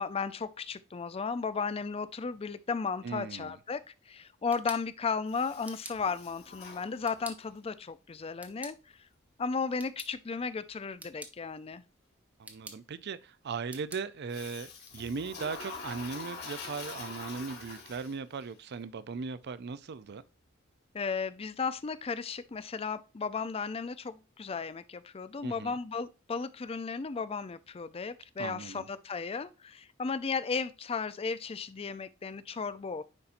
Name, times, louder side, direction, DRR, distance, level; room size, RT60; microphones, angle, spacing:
voice 1, 0.0-8.8 9.4-11.8 20.9-33.0, left 5 dB, 30° left, 0.4 m, -35 dB
voice 2, 3.0-3.6 12.4-20.2 25.4-25.8 28.4-28.9, right 5 dB, 55° right, 0.5 m, -38 dB
sound 1, 4.2-16.0, right 2 dB, 10° right, 0.9 m, -52 dB
Toilet flush, 5.3-7.5 14.3-18.4, left 4 dB, 50° left, 2.2 m, -45 dB
9.7 x 4.2 x 2.5 m
head